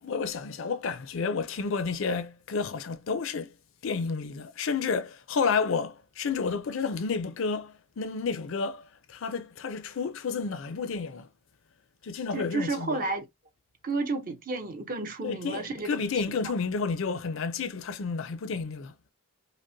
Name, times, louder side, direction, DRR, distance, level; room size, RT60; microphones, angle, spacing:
voice 1, 0.0-3.5 3.8-11.3 12.0-13.0 15.2-18.9, left 5 dB, 65° left, 0.5 m, -31 dB
voice 2, 12.3-13.3 13.8-16.0 16.4-16.5, right 3 dB, 40° right, 0.6 m, -31 dB
5.2 x 2.1 x 2.6 m
head